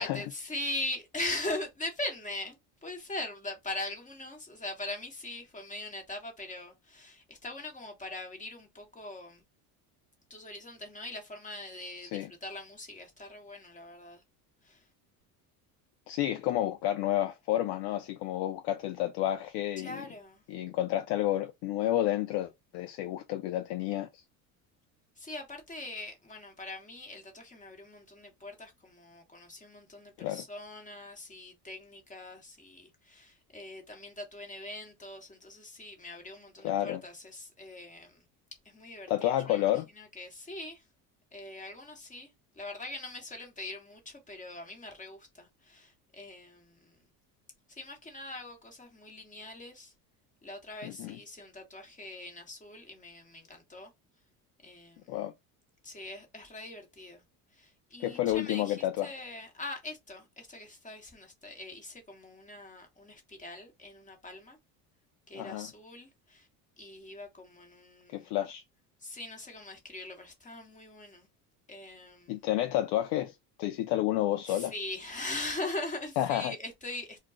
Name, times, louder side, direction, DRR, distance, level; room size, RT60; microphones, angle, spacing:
voice 1, 0.0-9.4 10.3-14.2 14.6-14.8 19.8-20.4 25.2-38.2 38.6-40.8 41.3-47.1 47.7-49.9 50.4-53.9 54.6-55.2 55.8-57.2 57.5-64.6 65.3-66.5 66.8-68.3 69.0-71.3 71.7-72.4 74.5-77.2, left 2 dB, 15° left, 1.1 m, -41 dB
voice 2, 16.1-20.1 20.5-24.2 30.2-30.4 36.6-37.0 39.1-39.9 50.8-51.2 55.1-55.3 58.0-59.1 65.3-65.7 68.1-68.6 72.3-74.7 76.2-76.5, left 13 dB, 60° left, 0.5 m, -30 dB
2.2 x 2.2 x 3.6 m
supercardioid pair, 90°, 45 cm